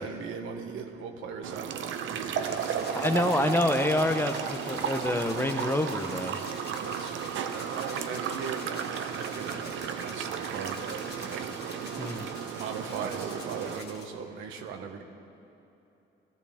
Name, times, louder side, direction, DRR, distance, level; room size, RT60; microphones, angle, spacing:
voice 1, 0.0-3.2 3.6-3.7 6.7-10.8 11.1-11.5 12.5-15.0, right 6 dB, 90° right, 4 dB, 1.2 m, -39 dB
sound 1, 1.4-13.8, right 7 dB, 75° right, 0.8 m, -34 dB
sound 2, 2.3-14.1, left 3 dB, 55° left, 2.0 m, -47 dB
voice 2, 2.9-6.4 12.0-12.3, left 1 dB, 10° left, 7 dB, 0.8 m, -27 dB
17.0 x 14.0 x 3.6 m, 2.9 s
cardioid pair, 90°, 20 cm